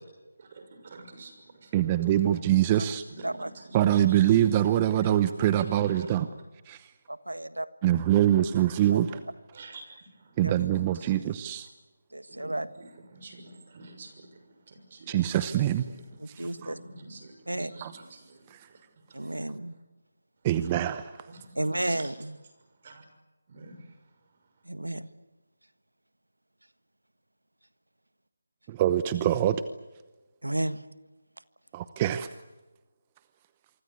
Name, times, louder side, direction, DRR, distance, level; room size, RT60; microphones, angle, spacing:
voice 1, 0.4-1.8 2.2-2.3 2.8-4.5 4.9-5.1 5.7-6.2 8.7-9.2 9.5-11.2 12.3-15.1 15.9-16.1 16.5-18.8 19.1-19.5 20.6-20.8 21.3-22.1 22.8-23.0 23.5-23.9, right 2 dB, 40° right, 7 dB, 6.4 m, -48 dB
voice 2, 1.7-3.0 3.7-6.3 6.7-6.8 7.8-9.1 10.4-11.7 15.1-15.8 16.6-16.7 17.8-17.9 20.4-21.0 28.8-29.6 31.7-32.3, right 12 dB, 20° right, 12 dB, 0.8 m, -24 dB
voice 3, 7.1-7.7 8.9-9.0 10.4-10.5 12.1-12.7 16.2-16.8 17.5-17.7 19.1-19.8 21.5-22.4 24.6-25.1 30.4-30.8, right 1 dB, 90° right, 13 dB, 1.6 m, -32 dB
26.5 x 24.5 x 8.4 m, 1.2 s
figure-of-eight pair, 160°, 0 cm